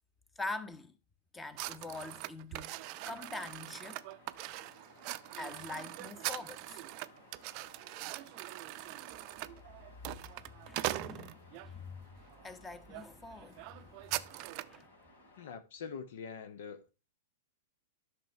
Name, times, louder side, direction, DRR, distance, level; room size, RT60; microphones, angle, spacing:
voice 1, 0.4-1.0 1.3-2.8 3.1-4.0 5.4-6.8 10.2-13.9 14.3-14.4 14.7-14.9, left 3 dB, 10° left, 1.1 m, -44 dB
sound 1, 1.6-11.7 12.3-12.5 12.9-13.1 13.3-14.8, right 17 dB, 45° right, 0.6 m, -42 dB
sound 2, 2.7-15.5, left 2 dB, 80° left, 3.5 m, -60 dB
voice 2, 15.4-16.9, left 6 dB, 60° left, 1.0 m, -44 dB
11.5 x 6.2 x 3.3 m
figure-of-eight pair, 100°, 0 cm